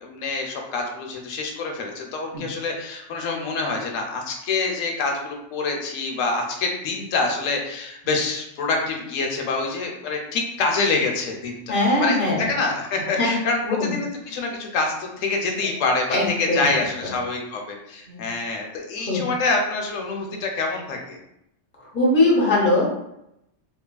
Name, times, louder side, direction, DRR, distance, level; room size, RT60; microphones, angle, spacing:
voice 1, 0.0-21.2, left 3 dB, 85° left, 2 dB, 1.0 m, -26 dB
voice 2, 11.7-12.5 13.1-13.3 13.6-13.9 16.1-17.1 18.1-18.2 19.1-19.2 21.8-22.9, left 2 dB, 15° left, -5 dB, 0.5 m, -21 dB
2.9 x 2.4 x 2.2 m, 0.81 s
omnidirectional pair, 1.3 m